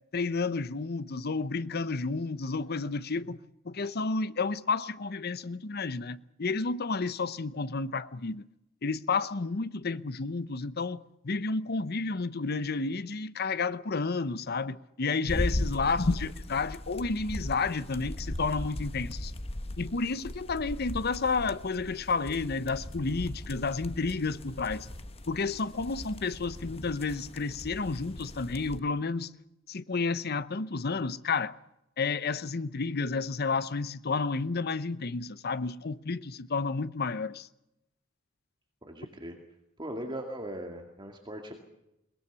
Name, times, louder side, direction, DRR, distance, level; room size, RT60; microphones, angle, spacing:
voice 1, 0.1-3.4 3.6-8.4 8.8-19.3 19.8-24.9 25.3-29.3 29.7-31.6 32.0-37.5, left 4 dB, 55° left, 0.8 m, -31 dB
sound 1, 15.3-28.8, left 1 dB, 30° left, 1.1 m, -38 dB
voice 2, 15.8-16.1 38.8-39.4 39.8-41.5, right 1 dB, 25° right, 2.3 m, -39 dB
22.0 x 20.5 x 6.9 m
head